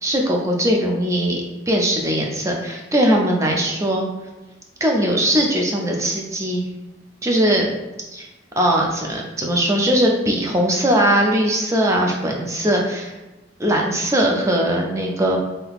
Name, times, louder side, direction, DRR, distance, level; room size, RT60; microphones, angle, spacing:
voice 1, 0.0-4.1 4.8-6.6 7.2-7.7 8.1-8.3 8.6-13.1 13.6-15.4, equal, 15° right, 0 dB, 0.3 m, -20 dB
2.7 x 2.4 x 3.3 m, 1.1 s
head